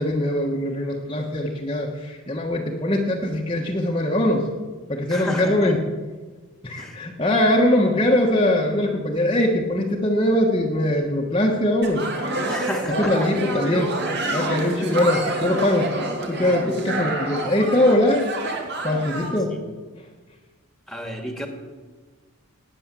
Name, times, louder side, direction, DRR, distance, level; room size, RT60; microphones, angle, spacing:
voice 1, 0.0-4.5 4.9-5.8 6.6-12.1 12.8-13.9 14.3-15.9 16.3-18.3 18.8-19.6, left 1 dB, 25° left, -1 dB, 1.3 m, -22 dB
voice 2, 5.1-5.7 6.8-7.0 12.5-13.2 19.5-19.6 20.9-21.5, equal, ahead, 4 dB, 1.9 m, -31 dB
sound 1, 11.8-19.4, right 2 dB, 50° right, 2.7 m, -27 dB
18.5 x 9.3 x 7.5 m, 1.4 s
head